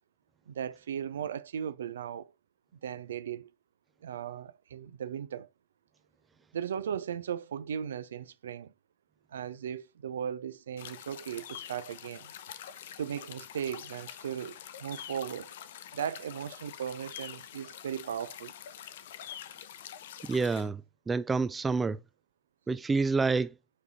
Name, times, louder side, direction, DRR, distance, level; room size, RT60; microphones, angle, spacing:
voice 1, 0.5-2.3 2.8-3.5 4.0-5.5 6.5-8.7 9.3-12.3 13.0-15.5 15.9-18.5, right 8 dB, 65° right, 0.6 m, -37 dB
sound 1, 10.8-20.7, left 10 dB, 60° left, 0.7 m, -46 dB
voice 2, 20.2-22.0 22.7-23.5, right 4 dB, 15° right, 0.4 m, -28 dB
6.4 x 4.9 x 3.6 m
figure-of-eight pair, 90°, 0 cm